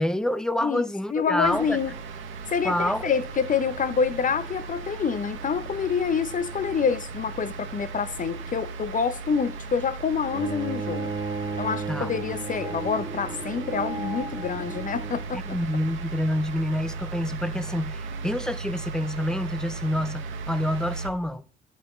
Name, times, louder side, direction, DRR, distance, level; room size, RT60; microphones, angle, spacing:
voice 1, 0.0-1.8 2.6-3.1 11.9-12.1 15.3-21.5, left 1 dB, 5° left, 0.5 m, -27 dB
voice 2, 0.6-1.9 2.5-11.1 11.6-15.6, left 6 dB, 40° left, 0.8 m, -27 dB
sound 1, 1.4-21.1, right 4 dB, 80° right, 1.2 m, -37 dB
Bowed string instrument, 10.3-15.4, right 4 dB, 20° right, 2.1 m, -34 dB
11.5 x 5.7 x 3.2 m
cardioid pair, 90°, 20 cm